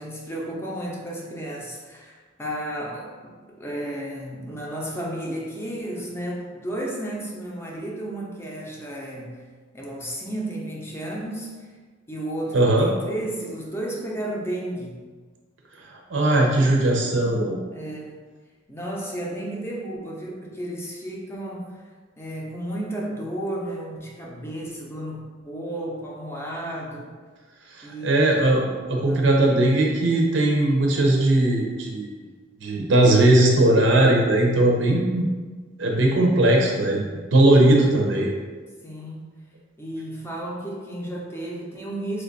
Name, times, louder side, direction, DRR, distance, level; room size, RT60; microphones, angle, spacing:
voice 1, 0.0-9.4 9.7-11.7 12.1-15.0 16.8-18.2 18.7-21.8 22.2-27.1 27.8-28.7 29.0-29.7 37.6-37.9 38.8-39.3 39.8-42.2, right 1 dB, 15° left, -3 dB, 0.5 m, -33 dB
voice 2, 12.5-12.9 16.1-17.6 27.8-28.6 28.9-32.1 32.6-35.3 35.8-37.0 37.3-38.3, right 1 dB, 80° right, 0 dB, 0.5 m, -19 dB
3.2 x 2.3 x 3.8 m, 1.5 s
head